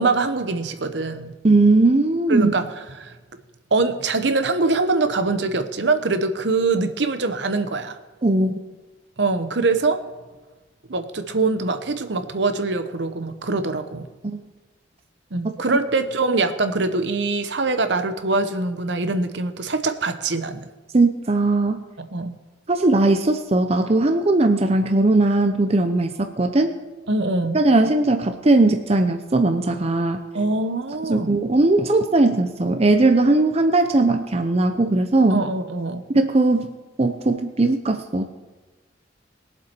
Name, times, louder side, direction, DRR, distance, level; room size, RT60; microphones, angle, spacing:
voice 1, 0.0-1.3 2.3-2.7 3.0-3.1 3.7-8.0 9.2-10.0 10.9-14.1 15.3-20.6 22.0-22.4 27.1-27.6 30.3-31.3 35.3-36.0, right 3 dB, 65° right, 9 dB, 0.9 m, -23 dB
voice 2, 1.4-2.5 8.2-8.5 20.9-21.8 22.7-26.7 27.5-30.2 31.1-35.5 36.1-36.7 37.0-38.3, right 2 dB, 35° right, 6 dB, 0.7 m, -18 dB
21.0 x 7.6 x 4.5 m, 1.2 s
head